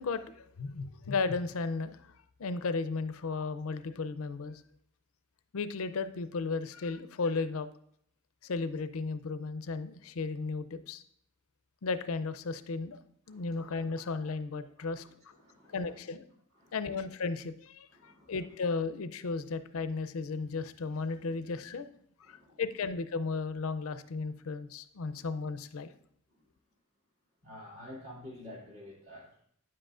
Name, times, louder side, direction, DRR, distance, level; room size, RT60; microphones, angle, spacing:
voice 1, 0.0-2.1 2.4-4.6 5.5-7.7 8.4-11.0 11.8-13.0 13.3-15.3 15.7-16.3 16.7-21.9 22.3-25.9, left 4 dB, 90° left, 12 dB, 0.5 m, -35 dB
voice 2, 13.3-14.0 15.0-15.9 16.5-17.0 17.9-18.4 22.2-22.6 25.0-25.3 26.3-26.4 27.4-29.4, left 1 dB, 70° right, -4 dB, 2.6 m, -51 dB
9.6 x 7.6 x 2.5 m, 0.67 s
head